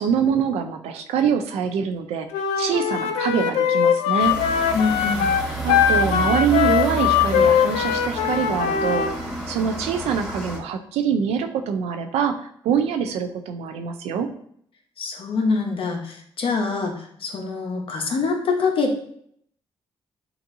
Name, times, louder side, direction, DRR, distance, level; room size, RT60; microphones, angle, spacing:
voice 1, 0.0-2.3 2.6-4.4 5.6-14.3, right 7 dB, 85° right, 7 dB, 0.5 m, -24 dB
Wind instrument woodwind instrument, 2.3-9.1, left 8 dB, 90° left, 0.4 m, -21 dB
sound 1, 4.2-10.6, right 2 dB, ahead, 1.9 m, -30 dB
voice 2, 4.7-5.3 15.0-19.0, left 4 dB, 60° left, 2 dB, 1.0 m, -25 dB
6.8 x 2.6 x 2.6 m, 0.66 s
supercardioid pair, 65°, 10 cm